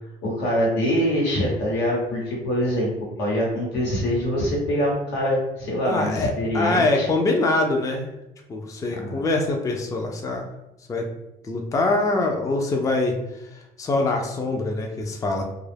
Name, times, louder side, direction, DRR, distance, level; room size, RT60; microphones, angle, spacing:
voice 1, 0.2-2.9 3.2-7.1 9.0-9.2, equal, 90° left, -3 dB, 1.0 m, -24 dB
voice 2, 5.9-8.1 8.5-10.4 10.9-11.0 11.4-13.1 13.5-15.4, left 2 dB, 20° left, 2 dB, 0.4 m, -24 dB
2.3 x 2.0 x 3.2 m, 0.91 s
cardioid pair, 110°, 17 cm